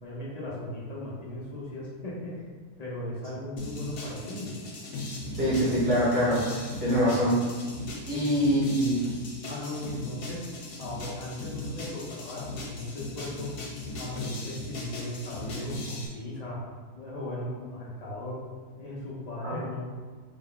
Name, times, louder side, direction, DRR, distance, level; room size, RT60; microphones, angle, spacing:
voice 1, 0.0-2.4 2.8-4.6 6.8-7.0 8.1-8.3 9.5-10.4 10.8-13.5 14.0-16.6 16.9-18.4 18.8-19.8, left 1 dB, 50° left, -6 dB, 0.4 m, -37 dB
sound 1, 3.6-16.1, left 2 dB, 70° left, 1.1 m, -38 dB
voice 2, 5.3-7.4 8.1-9.0 19.4-19.5, equal, 55° right, -11 dB, 2.1 m, -24 dB
3.7 x 2.3 x 3.7 m, 1.5 s
omnidirectional pair, 1.6 m